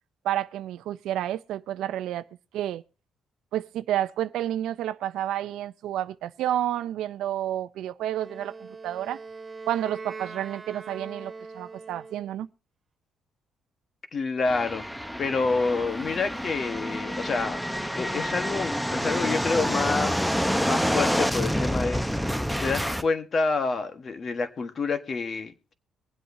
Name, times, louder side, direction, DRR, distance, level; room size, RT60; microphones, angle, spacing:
voice 1, 0.2-2.2 2.5-2.8 3.5-9.2 9.7-12.5, right 12 dB, 85° right, 0.5 m, -30 dB
Wind instrument woodwind instrument, 8.2-12.4, right 4 dB, 30° right, 1.9 m, -41 dB
voice 2, 14.1-14.8 15.2-17.6 17.9-25.7, left 4 dB, 45° left, 1.3 m, -28 dB
sound 1, 14.5-23.0, equal, ahead, 0.7 m, -28 dB
23.0 x 7.9 x 2.7 m
cardioid pair, 90°, 0 cm